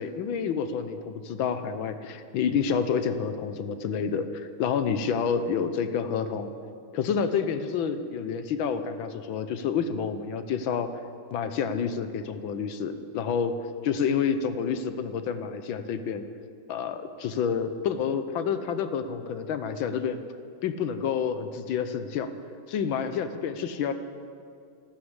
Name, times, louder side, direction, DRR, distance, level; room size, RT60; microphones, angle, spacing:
voice 1, 0.0-6.5 6.9-10.9 11.3-13.5 13.8-16.3 16.7-20.2 20.6-22.3 22.7-23.9, left 6 dB, 80° left, 10 dB, 1.6 m, -29 dB
13.0 x 12.5 x 8.1 m, 2.3 s
omnidirectional pair, 2.2 m